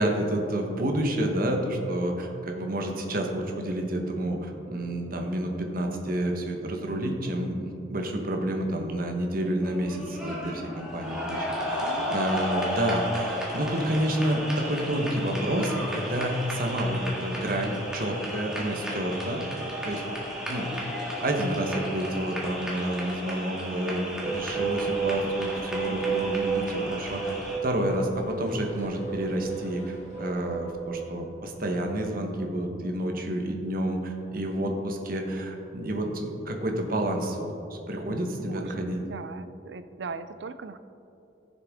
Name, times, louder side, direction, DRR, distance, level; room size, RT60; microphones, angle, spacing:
voice 1, 0.0-11.4 11.7-19.4 19.8-20.0 20.5-20.7 21.2-27.4 27.6-39.0, right 1 dB, 50° right, 3 dB, 1.2 m, -29 dB
sound 1, 9.6-27.6, equal, 5° right, 1.8 m, -34 dB
voice 2, 11.8-12.5 38.4-40.8, right 4 dB, 70° right, 12 dB, 0.5 m, -40 dB
sound 2, 12.0-30.3, left 1 dB, 45° left, 1.7 m, -49 dB
sound 3, 24.2-32.2, right 6 dB, 30° right, 1.8 m, -33 dB
15.5 x 6.8 x 3.6 m, 2.8 s
head